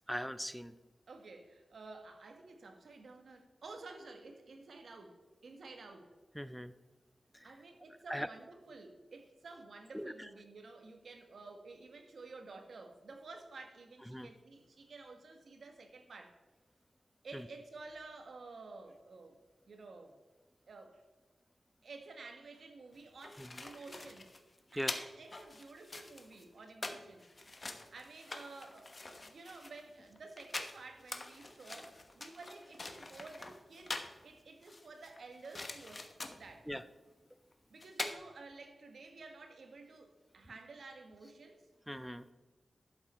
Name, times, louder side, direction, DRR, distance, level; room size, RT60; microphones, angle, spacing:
voice 1, 0.1-0.7 6.4-6.7 8.1-8.3 9.9-10.1 14.1-14.3 24.8-24.9 36.7-36.8 41.9-42.2, equal, ahead, 13 dB, 0.4 m, -39 dB
voice 2, 1.1-6.1 7.4-16.4 17.2-19.4 19.6-20.2 20.7-21.0 21.8-24.4 24.7-27.3 27.6-36.7 37.7-41.7, right 3 dB, 75° right, 5 dB, 1.6 m, -52 dB
sound 1, 22.9-34.2 34.6-36.5 37.5-37.6 37.8-38.1, left 2 dB, 35° left, 1.1 m, -45 dB
11.5 x 7.8 x 4.4 m, 1.2 s
wide cardioid pair, 80°, 0 cm